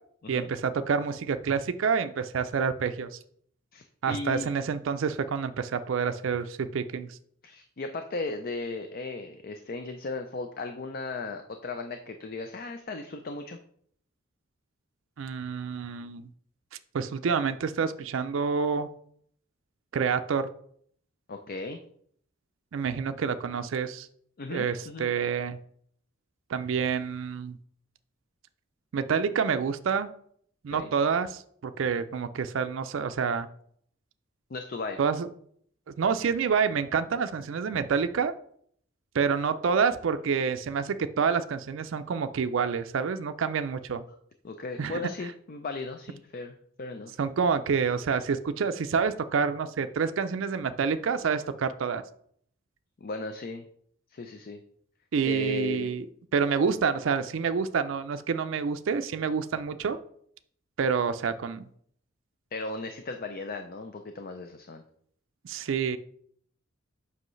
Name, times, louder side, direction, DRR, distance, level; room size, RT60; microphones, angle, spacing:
voice 1, 0.3-3.2 4.0-7.2 15.2-16.3 16.9-18.9 19.9-20.5 22.7-24.1 24.5-25.6 26.5-27.6 28.9-30.1 30.6-33.5 35.0-35.3 35.9-38.3 39.1-44.0 44.8-45.1 47.2-52.0 55.1-56.1 56.3-60.0 60.8-61.6 65.4-66.0, right 6 dB, 70° right, 9 dB, 0.4 m, -28 dB
voice 2, 3.7-4.5 7.4-13.6 21.3-21.8 24.4-25.1 30.7-30.9 34.5-35.0 44.4-47.2 53.0-53.7 54.1-54.6 55.2-55.9 62.5-64.8, left 3 dB, 45° left, 6 dB, 0.5 m, -36 dB
7.6 x 5.5 x 3.1 m, 0.64 s
head